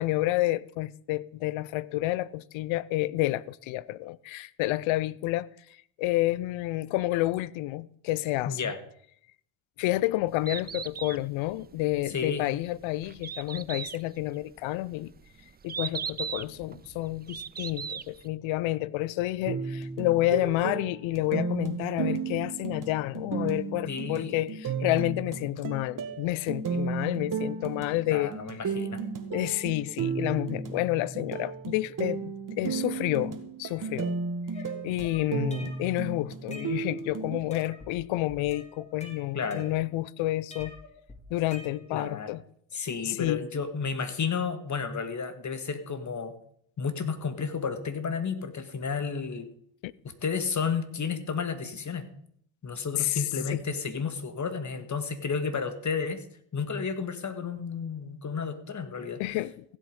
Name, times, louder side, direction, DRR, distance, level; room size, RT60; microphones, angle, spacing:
voice 1, 0.0-5.5 6.0-8.6 9.8-15.1 15.6-28.3 29.3-34.1 34.8-40.7 41.3-42.4 42.7-43.4 49.8-49.9 52.9-53.2 53.5-53.6 59.2-59.6, left 17 dB, 70° left, 0.7 m, -29 dB
voice 2, 8.5-8.8 12.1-12.4 23.9-24.4 28.1-29.0 39.3-39.6 41.9-42.3 42.7-46.3 46.8-49.5 50.0-52.1 52.6-56.2 56.5-59.2, left 5 dB, 35° left, 1.9 m, -32 dB
Bird, 10.3-18.3, right 7 dB, 20° right, 0.5 m, -39 dB
sound 1, 19.5-37.4, right 5 dB, 40° right, 1.9 m, -34 dB
sound 2, 34.5-36.0 36.3-37.1 37.5-38.0 38.3-40.1 40.5-42.1, left 2 dB, 15° left, 3.3 m, -47 dB
15.5 x 8.0 x 5.4 m
supercardioid pair, 75°, 49 cm